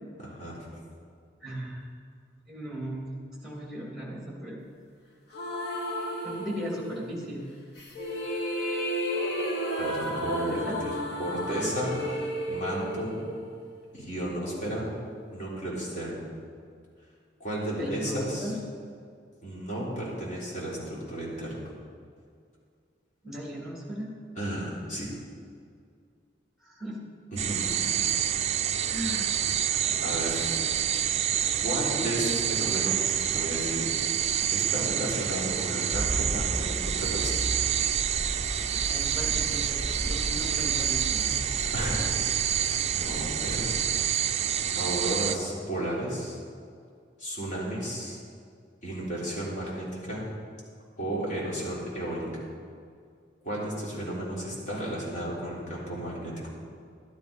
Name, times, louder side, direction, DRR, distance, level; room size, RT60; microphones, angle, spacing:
voice 1, 0.2-0.6 9.8-10.9 11.2-13.2 13.9-14.9 15.3-16.3 17.4-18.5 19.4-21.7 24.4-25.1 27.3-28.2 30.0-30.6 31.6-33.9 34.5-37.5 41.7-42.1 42.5-43.7 44.7-46.4 47.2-48.2 48.8-50.3 51.0-52.4 53.4-56.5, right 1 dB, 40° left, -6 dB, 3.8 m, -33 dB
voice 2, 1.4-1.8 2.5-3.1 3.4-4.6 6.2-7.4 10.4-10.8 17.8-18.5 23.2-24.1 26.6-27.0 28.9-29.3 29.8-30.6 38.9-41.5, right 1 dB, ahead, -2 dB, 2.6 m, -37 dB
sound 1, 5.3-7.0 7.8-13.9, equal, 60° left, 1.5 m, -32 dB
sound 2, 27.4-45.4, right 9 dB, 35° right, 0.4 m, -28 dB
sound 3, 35.9-44.0, right 1 dB, 75° left, 3.2 m, -36 dB
12.0 x 10.5 x 5.2 m, 2.2 s
head